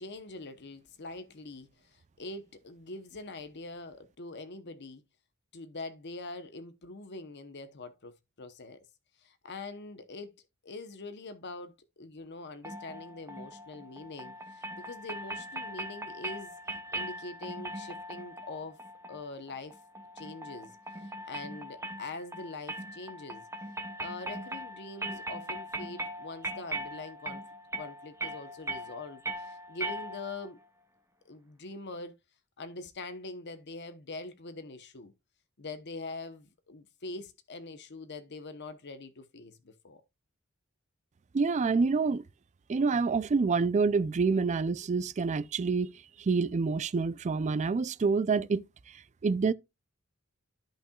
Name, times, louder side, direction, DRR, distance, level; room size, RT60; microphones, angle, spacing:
voice 1, 0.0-5.0 5.5-8.8 9.2-10.4 10.6-16.5 16.9-18.8 19.1-19.8 20.1-23.4 24.0-27.4 27.8-30.6 31.2-32.1 32.6-35.1 35.6-40.0, left 3 dB, 55° left, 0.9 m, -43 dB
sound 1, 12.6-30.5, right 1 dB, 15° right, 1.0 m, -40 dB
voice 2, 41.3-42.2 42.7-45.9 46.2-48.6 49.2-49.5, right 4 dB, 35° right, 0.4 m, -27 dB
13.0 x 5.7 x 2.3 m
head